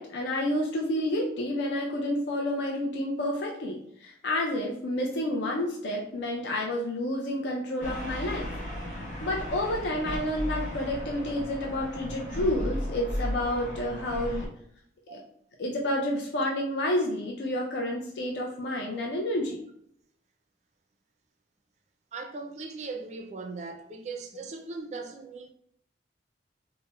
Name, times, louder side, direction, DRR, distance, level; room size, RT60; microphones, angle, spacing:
voice 1, 0.0-8.5 9.2-14.5 15.1-15.2 15.6-19.6, left 1 dB, 70° left, 0.4 m, -30 dB
sound 1, 7.8-14.5, equal, 45° left, 0.9 m, -35 dB
voice 2, 22.1-25.5, right 3 dB, 40° right, 0.3 m, -39 dB
4.1 x 2.0 x 2.2 m
head